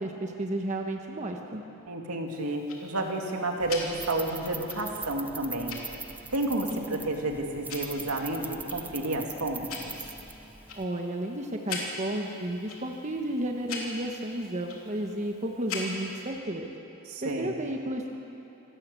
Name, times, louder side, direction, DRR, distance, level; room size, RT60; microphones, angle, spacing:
voice 1, 0.0-1.6 6.7-7.0 10.8-16.7 17.2-18.1, right 1 dB, 30° right, 2 dB, 1.3 m, -32 dB
voice 2, 1.9-5.8 6.3-10.0 17.1-17.6, right 2 dB, 80° right, 2 dB, 2.5 m, -31 dB
Tick-tock, 2.3-16.3, left 3 dB, 70° left, 3.3 m, -43 dB
sound 1, 3.6-10.8, right 3 dB, 10° right, 0.4 m, -42 dB
27.0 x 13.5 x 8.4 m, 3.0 s
head